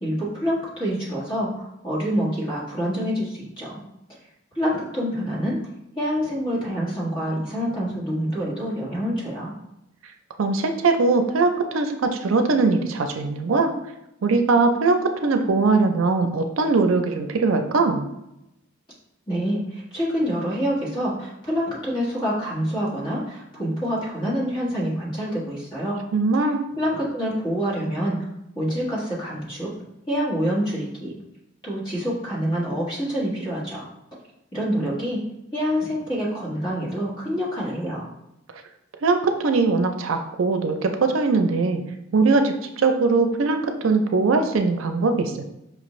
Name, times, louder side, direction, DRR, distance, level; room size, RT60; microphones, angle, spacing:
voice 1, 0.0-3.8 4.5-5.6 5.9-9.5 19.3-26.0 26.8-28.2 28.5-29.7 30.1-31.1 31.6-33.9 34.5-35.2 35.5-38.1, equal, 25° left, -7 dB, 1.5 m, -26 dB
voice 2, 10.4-13.7 14.2-18.1 26.1-26.6 39.0-41.8 42.1-45.5, right 3 dB, 85° right, 6 dB, 0.5 m, -21 dB
5.2 x 2.5 x 3.1 m, 0.87 s
head